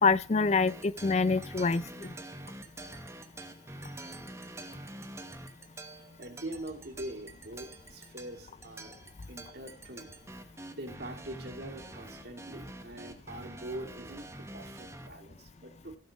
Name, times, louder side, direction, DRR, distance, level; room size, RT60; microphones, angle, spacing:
voice 1, 0.0-2.1, left 4 dB, 35° left, 0.4 m, -26 dB
sound 1, 0.7-15.1, right 1 dB, 15° right, 1.1 m, -46 dB
voice 2, 6.2-9.0 9.3-16.0, right 1 dB, 55° right, 2.4 m, -43 dB
15.5 x 6.1 x 5.2 m
head